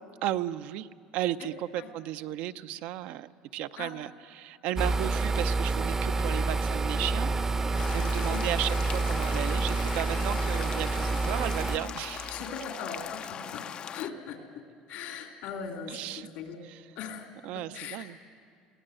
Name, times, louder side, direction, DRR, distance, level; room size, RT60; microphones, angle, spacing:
voice 1, 0.2-7.3 7.9-12.4 15.9-16.3 16.7-16.8 17.4-18.2, right 13 dB, 70° right, 12 dB, 0.6 m, -34 dB
sound 1, 4.8-11.8, right 3 dB, 20° right, 0.6 m, -28 dB
sound 2, 7.8-14.1, left 8 dB, 40° left, 0.5 m, -40 dB
voice 2, 12.3-13.6 13.9-14.4 14.9-16.6 17.0-17.3 17.5-18.3, left 6 dB, 75° left, 3 dB, 2.7 m, -40 dB
22.0 x 18.0 x 7.8 m, 2.1 s
cardioid pair, 115°, 2 cm